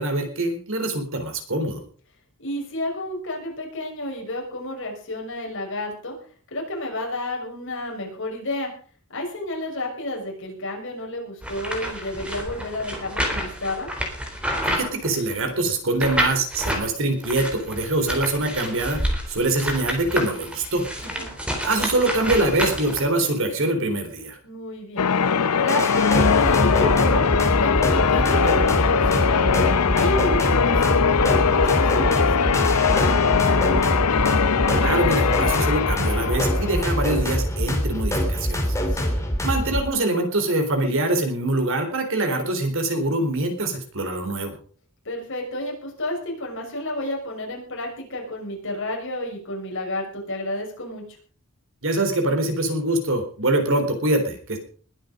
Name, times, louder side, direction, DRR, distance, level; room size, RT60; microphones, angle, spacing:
voice 1, 0.0-1.8 14.6-20.9 21.6-24.4 34.8-38.8 39.4-44.6 51.8-54.6, right 2 dB, 60° right, 6 dB, 4.0 m, -24 dB
voice 2, 2.4-6.2 6.5-8.7 9.1-13.9 21.0-21.3 24.4-25.1 25.5-29.5 29.9-34.0 38.9-39.1 45.0-51.0, left 1 dB, 60° left, 1 dB, 6.4 m, -30 dB
sound 1, 11.4-15.5 16.0-16.9 17.2-23.3, equal, 5° right, 3.7 m, -29 dB
Church bell, 25.0-37.2, left 6 dB, 90° left, 0.7 m, -21 dB
sound 2, 25.7-39.8, equal, 15° left, 3.3 m, -24 dB
21.0 x 9.2 x 5.2 m, 0.43 s
head